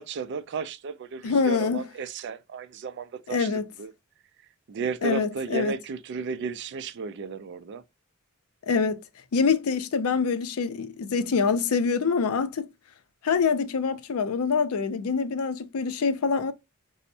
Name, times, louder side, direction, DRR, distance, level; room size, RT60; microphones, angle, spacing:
voice 1, 0.0-3.5 3.8-3.9 4.7-7.8, right 5 dB, 55° right, 0.3 m, -34 dB
voice 2, 1.2-1.8 3.3-3.6 5.0-5.7 8.7-9.0 9.3-12.7 13.2-16.5, left 5 dB, 80° left, 0.5 m, -25 dB
4.3 x 2.0 x 2.6 m
head